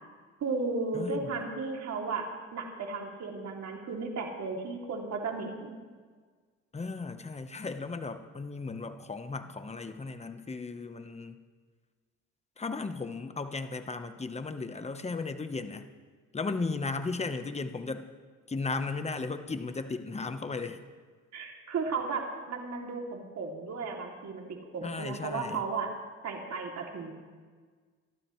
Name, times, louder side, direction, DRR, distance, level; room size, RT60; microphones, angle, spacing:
voice 1, 0.4-2.3 2.5-5.7 21.3-25.9 26.2-27.1, right 4 dB, 60° right, 0 dB, 2.9 m, -34 dB
voice 2, 0.9-1.3 6.7-11.4 12.6-15.9 16.3-18.1 18.5-20.8 24.8-25.7, left 3 dB, 20° left, 9 dB, 1.1 m, -35 dB
25.5 x 12.5 x 3.2 m, 1.5 s
cardioid pair, 90°, 30 cm